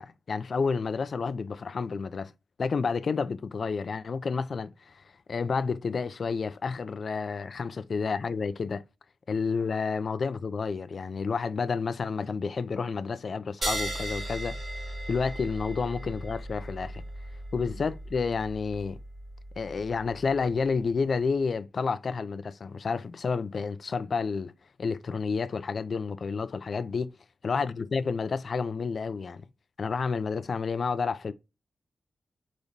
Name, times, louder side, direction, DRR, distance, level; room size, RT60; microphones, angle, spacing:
voice 1, 0.0-2.3 2.6-5.0 5.3-8.8 9.3-14.6 15.1-17.0 17.5-19.0 19.6-24.5 24.8-27.1 27.4-29.4 29.8-31.3, left 5 dB, 50° left, 0.4 m, -30 dB
sound 1, 13.6-20.6, right 1 dB, 45° right, 2.7 m, -37 dB
5.1 x 3.1 x 2.6 m
wide cardioid pair, 160°, 0 cm